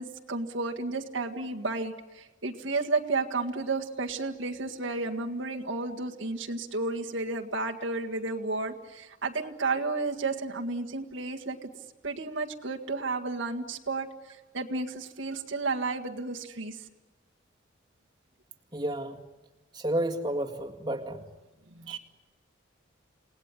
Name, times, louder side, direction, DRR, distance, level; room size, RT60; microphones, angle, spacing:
voice 1, 0.0-11.7 12.0-16.8 21.7-22.0, right 3 dB, 75° right, 2 dB, 1.9 m, -32 dB
voice 2, 18.7-19.2 19.7-21.2, right 1 dB, 20° right, 0 dB, 2.0 m, -31 dB
29.5 x 19.0 x 9.8 m, 1.2 s
head